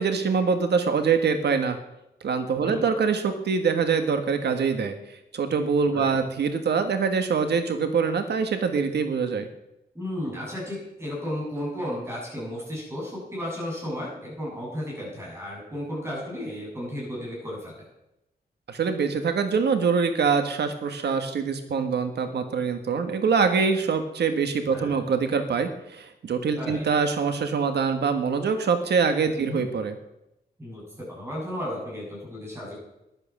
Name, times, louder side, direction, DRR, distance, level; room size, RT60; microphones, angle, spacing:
voice 1, 0.0-1.8 2.2-9.5 18.7-29.9, right 5 dB, 80° right, 7 dB, 1.5 m, -24 dB
voice 2, 5.9-6.2 9.9-17.8 24.7-25.0 26.6-26.9 29.4-29.7 30.6-32.8, equal, 15° right, -4 dB, 8.0 m, -34 dB
14.0 x 11.5 x 7.4 m, 0.89 s
wide cardioid pair, 175°, 17 cm